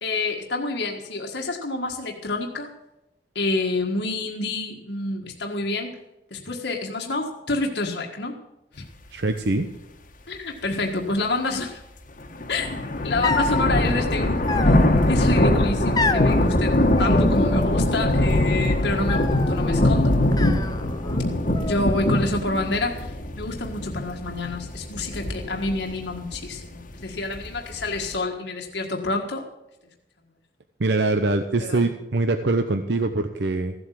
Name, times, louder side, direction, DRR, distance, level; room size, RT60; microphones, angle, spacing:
voice 1, 0.0-2.7 3.3-5.9 6.3-8.3 8.7-8.8 10.3-11.8 12.5-12.7 13.0-14.8 15.1-20.1 21.6-29.4 31.7-31.8, left 2 dB, 65° left, 1 dB, 1.6 m, -28 dB
voice 2, 9.1-9.7 30.8-33.7, right 2 dB, 60° right, 7 dB, 0.8 m, -23 dB
sound 1, 12.2-28.1, left 1 dB, 45° left, 1.5 m, -22 dB
sound 2, 13.2-13.7 14.5-15.1 16.0-16.3 17.0-17.8 18.1-18.6 19.1-19.6 20.3-21.2 21.5-22.3, left 3 dB, 20° left, 0.8 m, -29 dB
15.5 x 8.0 x 7.5 m, 0.94 s
head